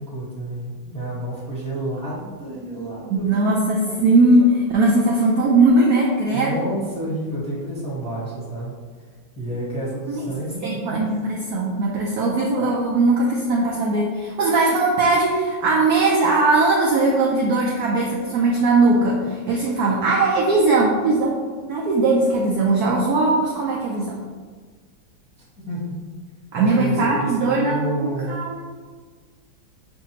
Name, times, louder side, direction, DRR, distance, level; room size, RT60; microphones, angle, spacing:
voice 1, 0.0-3.2 3.8-4.1 6.2-8.7 9.4-11.0 25.6-26.0 26.5-28.5, right 1 dB, 5° left, -9 dB, 0.9 m, -30 dB
voice 2, 3.1-6.6 10.1-10.3 10.6-24.2 26.5-28.6, right 2 dB, 75° right, -2 dB, 0.9 m, -19 dB
6.5 x 2.6 x 2.9 m, 1.5 s
omnidirectional pair, 2.2 m